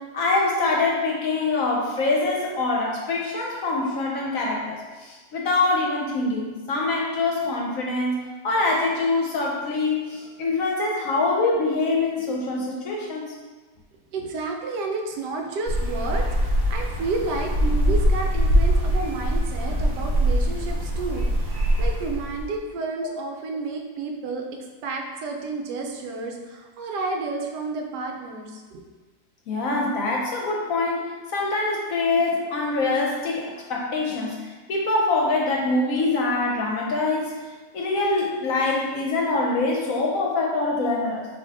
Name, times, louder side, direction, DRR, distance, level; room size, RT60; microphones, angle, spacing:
voice 1, 0.0-13.3 29.5-41.3, left 3 dB, 65° left, -1 dB, 0.9 m, -24 dB
voice 2, 14.1-24.5 24.8-28.8, right 3 dB, 80° right, 2 dB, 1.2 m, -31 dB
sound 1, 15.6-22.5, equal, 60° right, 1.4 m, -23 dB
5.2 x 2.6 x 3.4 m, 1.3 s
omnidirectional pair, 1.8 m